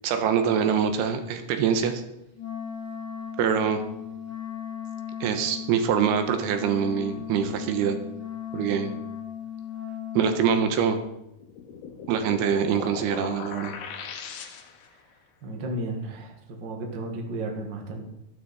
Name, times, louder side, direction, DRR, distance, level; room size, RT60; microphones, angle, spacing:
voice 1, 0.0-2.0 3.4-3.8 5.2-8.0 8.5-8.9 10.2-11.0 12.1-13.7, right 7 dB, 85° right, 7 dB, 3.2 m, -24 dB
Wind instrument woodwind instrument, 2.3-10.8, left 9 dB, 15° left, 5.7 m, -37 dB
sound 1, 11.4-15.0, left 6 dB, 85° left, 3.3 m, -39 dB
voice 2, 15.4-18.0, right 1 dB, 45° right, 2 dB, 1.5 m, -33 dB
12.5 x 12.0 x 4.2 m, 0.85 s
omnidirectional pair, 4.5 m